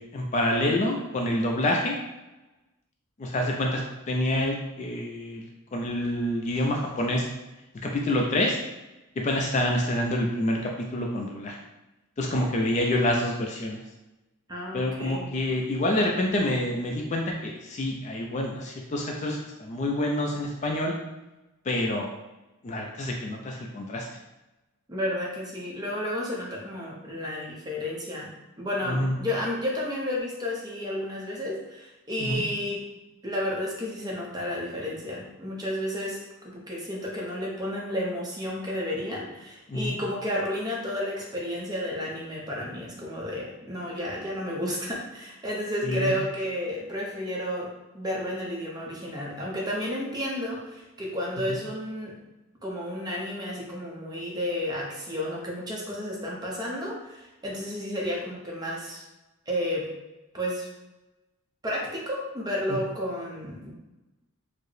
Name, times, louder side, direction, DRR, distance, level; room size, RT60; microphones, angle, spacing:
voice 1, 0.0-2.0 3.2-3.8 4.1-5.4 5.7-7.3 7.8-8.6 9.2-11.6 12.2-13.8 14.7-20.9 21.7-22.1 22.6-24.1 28.9-29.2 32.2-32.4 39.7-40.0 45.8-46.1 62.7-62.8, left 1 dB, 30° left, 0 dB, 0.3 m, -27 dB
voice 2, 14.5-15.3 24.9-28.3 28.6-32.8 33.2-52.2 52.6-59.0 59.5-59.9 60.3-60.7 61.6-63.7, left 1 dB, 15° right, -3 dB, 0.6 m, -32 dB
4.5 x 2.0 x 3.1 m, 1.0 s
head